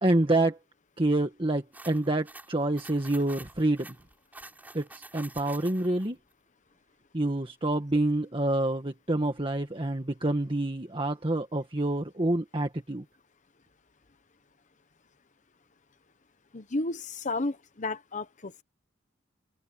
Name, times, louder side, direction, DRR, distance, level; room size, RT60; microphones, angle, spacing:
voice 1, 0.0-0.6 1.0-3.9 4.7-6.2 7.1-13.0, right 1 dB, 25° right, 1.6 m, -27 dB
sound 1, 1.7-6.1, right 2 dB, 10° right, 6.8 m, -48 dB
voice 2, 16.5-18.6, left 2 dB, 40° left, 1.0 m, -32 dB
open air
head